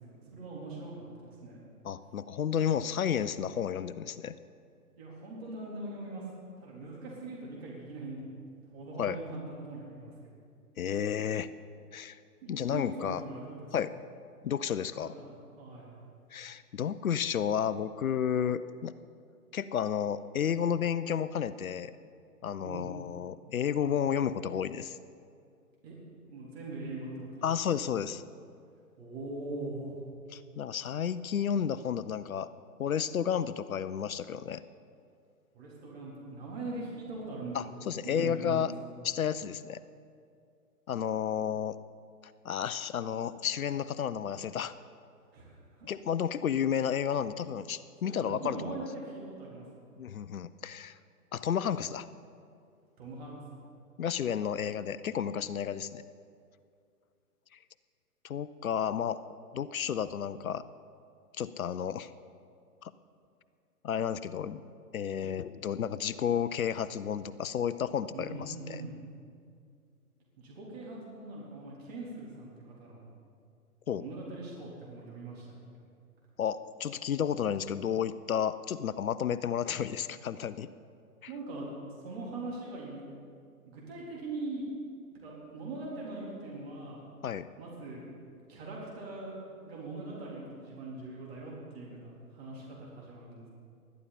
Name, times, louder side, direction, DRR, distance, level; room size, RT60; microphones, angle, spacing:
voice 1, 0.0-1.6 5.0-6.2 6.6-8.3 8.7-10.1 12.4-13.7 15.0-15.3 15.6-16.0 22.6-23.0 25.8-25.9 26.3-27.5 29.0-30.0 35.5-38.7 45.3-45.9 48.0-49.6 53.0-53.3 68.1-69.0 70.4-73.1 73.9-75.6 81.3-81.7 82.0-83.0 83.7-84.7 85.1-87.0 87.6-88.1 88.5-89.4 89.6-93.5, right 2 dB, 40° right, -5 dB, 3.9 m, -41 dB
voice 2, 1.8-4.3 9.0-9.2 10.8-11.5 11.9-12.2 12.5-13.2 13.7-13.9 14.4-15.1 16.3-18.9 19.5-21.9 22.4-25.0 27.4-28.2 30.3-32.5 32.8-34.6 37.5-38.7 39.0-39.8 40.9-41.8 42.4-44.7 45.8-48.8 50.0-50.9 51.3-52.1 54.0-56.0 58.2-59.2 59.5-60.6 61.4-62.1 62.8-62.9 63.8-64.6 64.9-68.8 73.9-74.0 76.4-80.7 81.2-81.3 87.2-87.5, left 8 dB, 60° left, 14 dB, 0.7 m, -32 dB
20.5 x 13.0 x 4.2 m, 2.3 s
hypercardioid pair, 150°, 47 cm